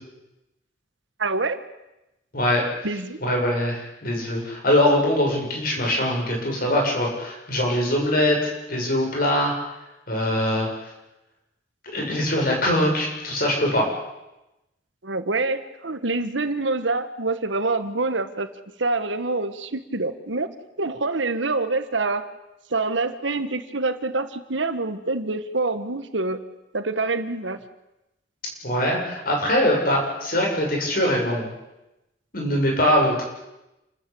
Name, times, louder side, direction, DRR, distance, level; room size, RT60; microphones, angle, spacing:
voice 1, 1.2-1.6 2.8-3.2 15.0-18.5 18.8-20.5 20.8-22.2 22.7-26.4 26.7-27.6, right 3 dB, 80° right, 11 dB, 1.7 m, -26 dB
voice 2, 2.3-2.6 3.2-9.5 10.1-10.9 11.8-13.9 28.6-31.6 32.3-33.2, left 1 dB, 50° left, 0 dB, 7.4 m, -22 dB
29.0 x 13.5 x 8.7 m, 0.96 s
head